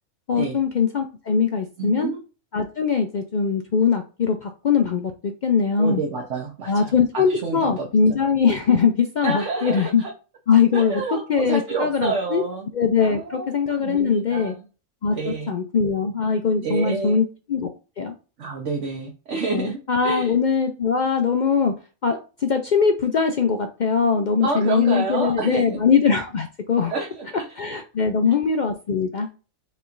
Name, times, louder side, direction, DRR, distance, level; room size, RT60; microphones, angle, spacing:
voice 1, 0.3-2.1 2.5-6.0 6.7-10.0 10.5-12.4 12.7-14.5 15.0-17.7 18.0-18.1 19.5-21.7 22.0-26.9 27.6-29.3, left 6 dB, 75° left, 5 dB, 0.4 m, -21 dB
voice 2, 1.8-2.2 5.8-7.9 9.2-10.1 10.7-12.7 13.0-14.6 15.2-15.6 16.6-17.2 18.4-20.3 24.4-25.8 26.9-27.3, right 4 dB, 60° right, 0 dB, 1.2 m, -28 dB
6.5 x 3.1 x 2.5 m, 0.33 s
omnidirectional pair, 1.5 m